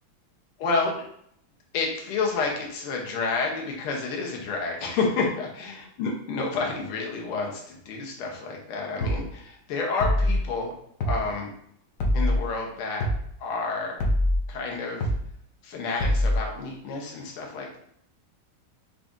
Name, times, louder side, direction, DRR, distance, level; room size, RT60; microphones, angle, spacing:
voice 1, 0.6-1.1 1.7-10.7 11.1-11.5 12.1-13.1 13.4-14.0 14.5-15.1 15.6-17.8, left 4 dB, 85° left, 0 dB, 1.9 m, -29 dB
sound 1, 9.0-9.2 10.0-10.4 11.0-11.2 12.0-12.4 13.0-13.2 14.0-14.4 15.0-15.2 16.0-16.4, left 1 dB, 65° left, 0.8 m, -23 dB
5.7 x 2.6 x 3.6 m, 0.70 s
omnidirectional pair, 2.3 m